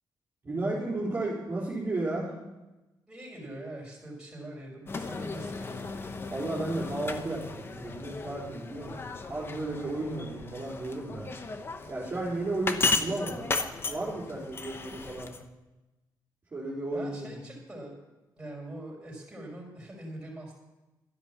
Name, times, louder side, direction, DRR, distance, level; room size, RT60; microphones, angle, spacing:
voice 1, 0.4-2.4 6.3-11.3 11.9-13.5 13.9-15.3 16.5-17.4, right 2 dB, 25° right, -8 dB, 3.8 m, -33 dB
voice 2, 3.1-5.9 16.9-17.9 18.4-20.5, right 1 dB, 10° right, -3 dB, 5.2 m, -43 dB
sound 1, 4.9-15.4, left 3 dB, 30° left, 0.9 m, -35 dB
12.5 x 10.5 x 7.3 m, 1.1 s
cardioid pair, 140°, 8 cm